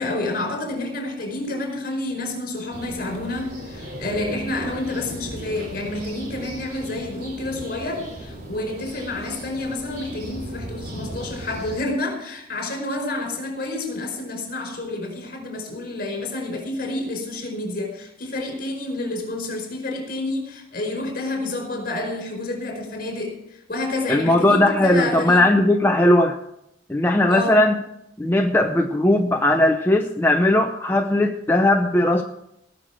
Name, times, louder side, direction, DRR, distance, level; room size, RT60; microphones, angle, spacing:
voice 1, 0.0-23.4 23.7-25.4 27.3-27.6, left 2 dB, 55° left, 4.9 m, -29 dB
sound 1, 2.7-11.8, right 1 dB, 55° right, 3.1 m, -37 dB
voice 2, 24.1-26.4 26.9-27.8 28.2-32.2, left 1 dB, 10° left, 0.6 m, -18 dB
19.0 x 6.7 x 6.0 m
head